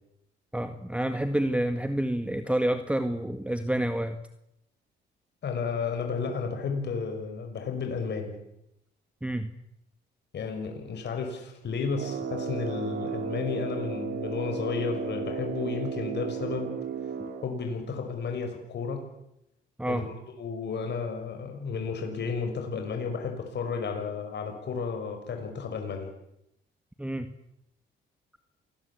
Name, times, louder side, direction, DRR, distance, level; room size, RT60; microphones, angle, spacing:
voice 1, 0.5-4.2 9.2-9.5 19.8-20.1 27.0-27.3, right 1 dB, 5° right, 8 dB, 1.9 m, -28 dB
voice 2, 5.4-8.4 10.3-16.7 17.4-19.1 19.9-26.1, left 5 dB, 60° left, 4 dB, 5.9 m, -32 dB
Brass instrument, 11.9-17.5, right 6 dB, 60° right, 4.7 m, -34 dB
28.0 x 20.0 x 8.6 m, 0.82 s
cardioid pair, 90°, 20 cm